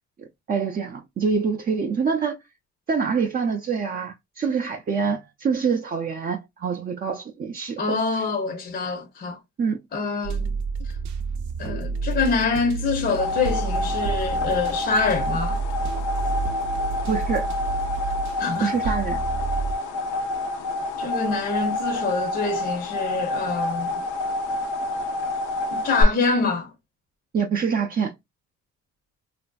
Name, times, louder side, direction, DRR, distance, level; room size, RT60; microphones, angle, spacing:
voice 1, 0.5-2.4 2.9-8.0 9.6-9.8 17.1-17.5 18.6-19.2 27.3-28.1, right 5 dB, 30° right, 0.4 m, -25 dB
voice 2, 7.8-9.4 9.9-10.6 10.9-11.0 11.6-15.6 18.4-19.0 21.0-24.0 25.7-26.7, left 4 dB, 35° left, 0.6 m, -26 dB
sound 1, 10.2-19.8, right 4 dB, 75° right, 0.6 m, -29 dB
sound 2, 12.9-26.0, left 2 dB, 85° left, 0.6 m, -28 dB
3.1 x 2.5 x 2.2 m
cardioid pair, 90°, 30 cm